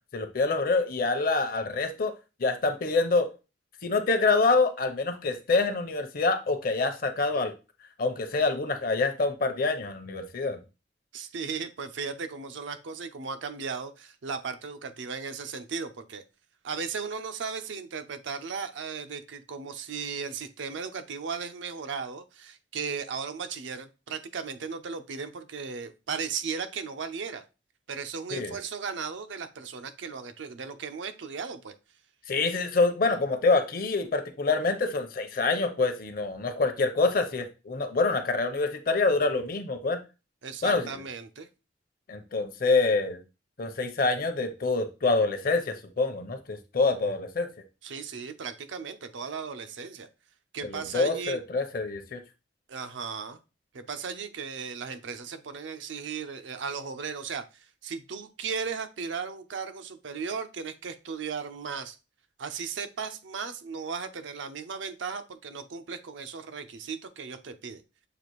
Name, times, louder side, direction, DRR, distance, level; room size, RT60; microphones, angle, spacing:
voice 1, 0.1-2.1 2.4-3.3 3.8-7.5 8.0-10.6 28.3-28.6 32.3-40.0 40.6-41.0 42.1-43.2 43.6-47.5 50.6-52.2, left 3 dB, 50° left, 7 dB, 0.6 m, -26 dB
voice 2, 11.1-16.2 16.6-27.4 27.9-31.7 40.4-41.5 47.8-50.1 50.5-51.4 52.7-53.4 53.7-62.0 62.4-67.8, right 5 dB, 85° right, 10 dB, 0.5 m, -36 dB
6.8 x 2.4 x 3.0 m, 0.29 s
head